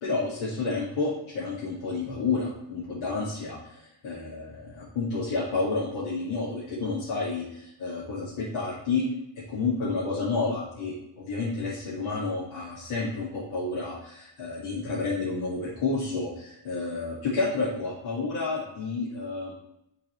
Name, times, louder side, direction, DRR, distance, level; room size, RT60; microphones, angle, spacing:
voice 1, 0.0-9.0 9.5-19.5, left 3 dB, 70° left, -8 dB, 2.1 m, -30 dB
9.9 x 4.0 x 3.2 m, 0.83 s
cardioid pair, 165°, 50 cm